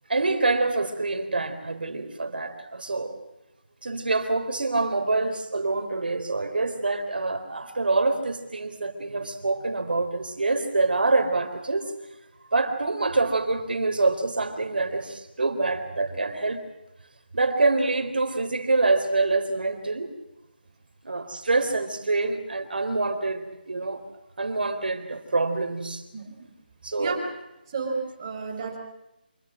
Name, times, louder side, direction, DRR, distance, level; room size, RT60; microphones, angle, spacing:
voice 1, 0.1-3.2 3.8-11.9 12.5-16.6 17.3-20.1 21.0-24.0 24.4-26.0 26.8-27.2, right 3 dB, 70° right, 7 dB, 4.0 m, -26 dB
voice 2, 26.1-26.5 27.0-27.3 27.7-28.8, right 4 dB, 25° right, 0 dB, 5.2 m, -32 dB
26.5 x 19.5 x 7.7 m, 0.93 s
figure-of-eight pair, 170°, 5 cm